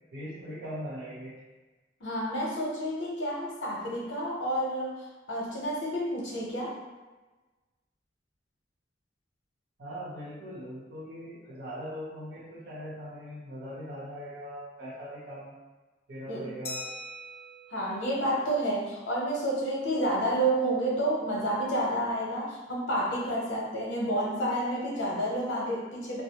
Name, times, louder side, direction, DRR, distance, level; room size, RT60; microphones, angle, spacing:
voice 1, 0.1-1.4 9.8-15.6 16.1-16.9, equal, 65° right, -7 dB, 0.9 m, -40 dB
voice 2, 2.0-5.0 5.3-6.8 16.3-16.5 17.7-26.2, right 1 dB, 85° left, -4 dB, 0.7 m, -30 dB
Glass, 16.6-19.1, left 1 dB, 35° left, 0.4 m, -43 dB
2.2 x 2.0 x 2.8 m, 1.2 s
head